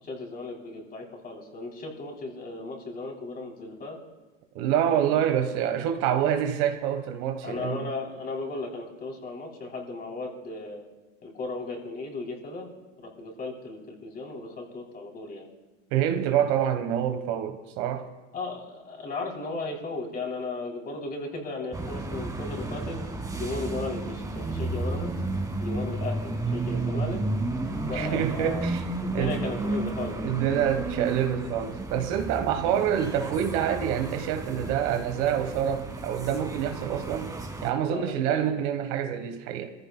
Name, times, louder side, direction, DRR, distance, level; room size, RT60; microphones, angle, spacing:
voice 1, 0.0-4.0 4.9-5.1 7.4-10.8 11.2-12.7 13.0-15.5 18.3-23.0 23.3-25.1 25.6-27.2 27.8-28.6 29.0-30.2 37.8-38.7, left 3 dB, 25° left, 3.2 m, -36 dB
voice 2, 4.5-7.9 15.9-18.1 27.8-28.8 29.1-29.4 30.2-37.3 37.6-39.7, right 9 dB, 50° right, 1.2 m, -27 dB
sound 1, 21.7-37.7, right 2 dB, 10° right, 1.3 m, -32 dB
24.5 x 15.0 x 2.2 m
hypercardioid pair, 115°, 37 cm